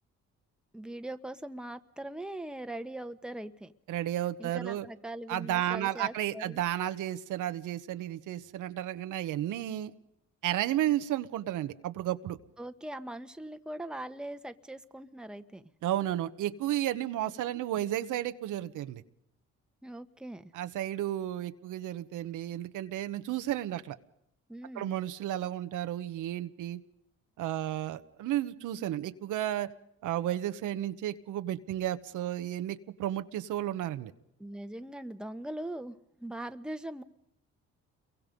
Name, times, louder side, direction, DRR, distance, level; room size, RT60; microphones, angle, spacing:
voice 1, 0.7-3.7 4.4-6.6 12.6-15.7 19.8-20.5 24.5-25.0 34.4-37.0, right 1 dB, 5° right, 8 dB, 1.2 m, -41 dB
voice 2, 3.9-4.9 5.3-9.9 10.4-12.4 15.8-19.0 20.5-24.0 24.7-26.8 27.4-29.7 30.0-34.1, right 12 dB, 85° right, 10 dB, 1.2 m, -33 dB
29.0 x 23.0 x 5.3 m, 0.79 s
cardioid pair, 90°, 30 cm